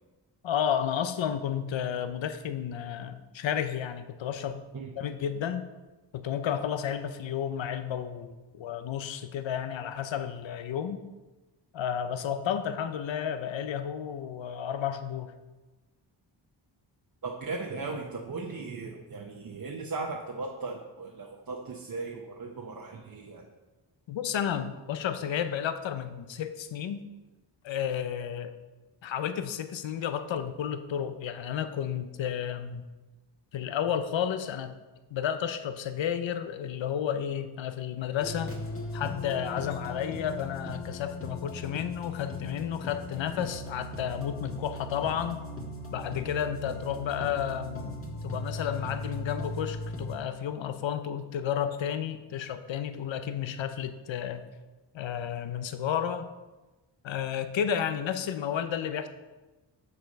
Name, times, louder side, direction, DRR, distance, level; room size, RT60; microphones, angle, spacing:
voice 1, 0.4-4.7 5.0-5.7 6.1-11.0 11.7-15.4 24.1-27.0 27.6-28.6 29.0-32.9 33.5-34.8 35.1-38.5 38.9-45.4 45.9-48.0 48.2-54.4 54.9-56.3 57.0-59.1, left 9 dB, 80° left, 10 dB, 0.7 m, -32 dB
voice 2, 17.2-23.5, right 3 dB, 50° right, 0 dB, 1.0 m, -37 dB
sound 1, 38.2-50.1, left 1 dB, 30° left, 1.6 m, -38 dB
6.9 x 6.6 x 5.3 m, 1.1 s
wide cardioid pair, 90°, 45 cm